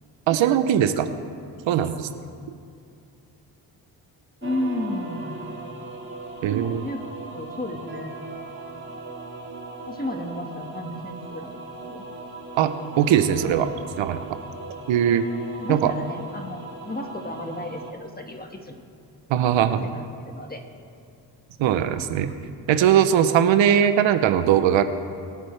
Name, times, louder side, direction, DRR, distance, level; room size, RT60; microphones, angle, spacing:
voice 1, 0.3-1.1 1.7-2.1 6.4-6.8 12.6-13.7 14.0-14.2 14.9-15.2 15.7-15.9 19.3-19.8 21.6-22.3 22.7-24.8, right 9 dB, 80° right, 10 dB, 0.8 m, -20 dB
voice 2, 4.4-5.5 6.8-7.0 7.3-8.1 9.9-12.0 15.6-18.8 19.8-20.6, left 1 dB, 20° left, 4 dB, 1.8 m, -33 dB
sound 1, 4.4-17.9, right 3 dB, 25° right, 2.3 m, -38 dB
22.0 x 9.1 x 3.4 m, 2.5 s
supercardioid pair, 55°, 45 cm